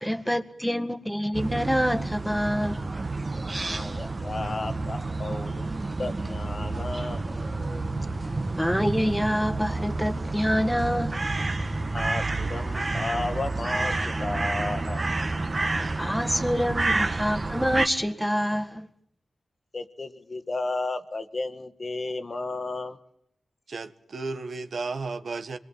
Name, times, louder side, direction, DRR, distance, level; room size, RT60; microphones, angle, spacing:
voice 1, 0.0-2.8 8.5-11.2 16.0-18.9, equal, ahead, 1.7 m, -26 dB
sound 1, 1.3-17.9, right 2 dB, 35° right, 1.5 m, -29 dB
voice 2, 3.6-5.7 6.0-7.2 11.9-15.0 19.7-23.0, left 2 dB, 40° left, 1.6 m, -33 dB
voice 3, 23.7-25.6, right 3 dB, 65° right, 1.5 m, -33 dB
26.5 x 21.5 x 9.1 m
cardioid pair, 75°, 0 cm